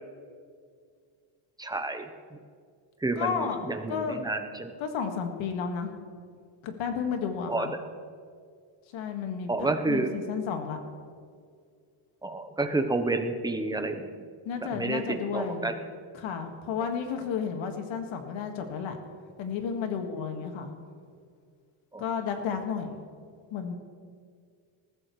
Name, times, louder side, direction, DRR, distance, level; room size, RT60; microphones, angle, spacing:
voice 1, 1.6-2.4 3.0-4.7 7.5-7.8 9.5-10.1 12.2-14.3 14.6-15.8 16.8-16.9 21.9-22.0, right 2 dB, 10° right, 6 dB, 0.8 m, -30 dB
voice 2, 3.2-3.6 3.9-4.2 4.8-5.9 6.6-7.7 8.9-10.8 14.5-15.7 16.2-19.0 19.4-20.7 22.0-22.9 23.5-23.7, left 6 dB, 70° left, 5 dB, 1.9 m, -32 dB
20.5 x 14.5 x 3.2 m, 2.1 s
cardioid pair, 140°, 48 cm